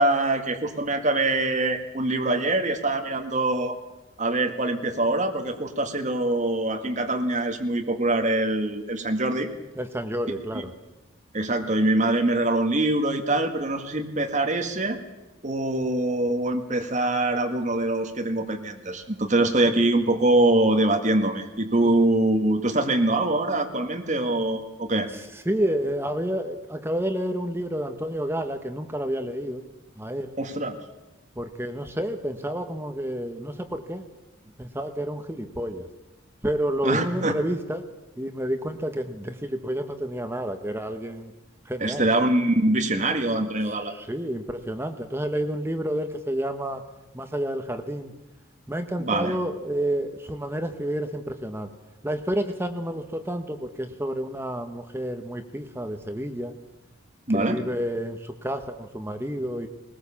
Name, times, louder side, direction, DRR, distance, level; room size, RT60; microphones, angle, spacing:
voice 1, 0.0-3.8 4.2-9.5 10.5-10.6 11.3-15.0 15.4-25.1 30.4-30.8 36.8-37.3 41.8-43.9 49.0-49.4 57.3-57.6, right 2 dB, 40° right, 4 dB, 1.9 m, -24 dB
voice 2, 9.8-10.7 25.5-29.6 30.0-30.3 31.4-34.0 34.6-35.9 36.4-37.8 38.2-41.3 41.7-42.1 43.7-46.8 47.1-48.1 48.7-51.7 52.0-56.5 57.3-59.7, right 1 dB, 10° right, 7 dB, 1.2 m, -29 dB
20.0 x 19.5 x 7.2 m, 1.0 s
head